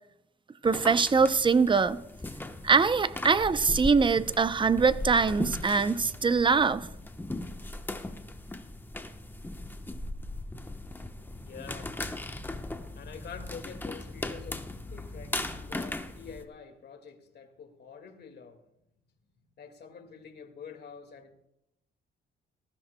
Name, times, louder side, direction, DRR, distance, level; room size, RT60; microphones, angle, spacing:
sound 1, 0.6-16.4, left 2 dB, 10° left, 1.0 m, -38 dB
voice 1, 0.6-2.0 2.6-6.9, right 5 dB, 25° right, 14 dB, 0.6 m, -23 dB
voice 2, 11.4-12.0 12.9-18.6 19.6-21.3, left 6 dB, 55° left, 6 dB, 2.0 m, -47 dB
19.5 x 14.5 x 2.2 m, 0.82 s
cardioid pair, 90°, 20 cm